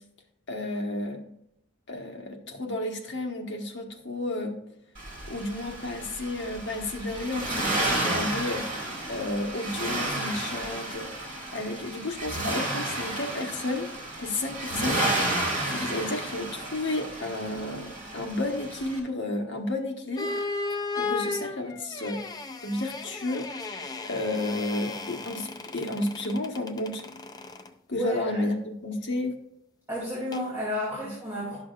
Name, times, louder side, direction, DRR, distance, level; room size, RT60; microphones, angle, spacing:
voice 1, 0.5-1.2 1.9-4.6 5.3-13.9 14.2-15.4 15.7-20.3 20.7-22.2 22.6-27.0 27.9-29.3 31.0-31.1, left 2 dB, 60° left, 3 dB, 1.2 m, -32 dB
Accelerating revving vroom, 4.9-19.0, right 2 dB, 40° right, 3.2 m, -32 dB
sound 1, 20.2-27.7 30.3-30.5, left 3 dB, 20° left, 0.4 m, -35 dB
voice 2, 28.0-28.4 29.9-31.6, left 1 dB, 10° right, -8 dB, 2.4 m, -32 dB
11.5 x 6.3 x 2.4 m, 0.74 s
head